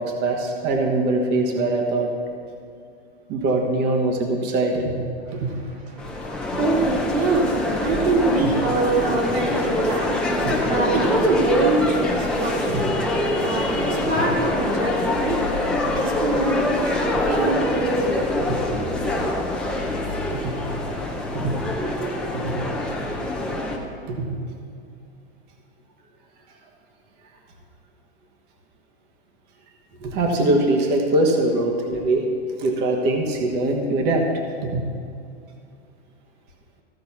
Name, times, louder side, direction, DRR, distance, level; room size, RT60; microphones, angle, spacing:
voice 1, 0.0-2.1 3.3-4.9 5.3-5.5 6.5-6.6 8.4-8.5 10.4-10.5 12.7-12.8 18.5-18.6 20.3-20.6 21.3-21.6 22.3-22.5 24.1-24.3 30.0-32.3 32.6-34.3 34.6-34.8, right 2 dB, 30° right, 2 dB, 1.3 m, -22 dB
voice 2, 5.3-18.3, right 2 dB, 65° right, -2 dB, 2.8 m, -25 dB
sound 1, 6.0-23.8, left 1 dB, 5° left, 0.8 m, -25 dB
15.0 x 5.1 x 6.0 m, 2.5 s
hypercardioid pair, 150°, 33 cm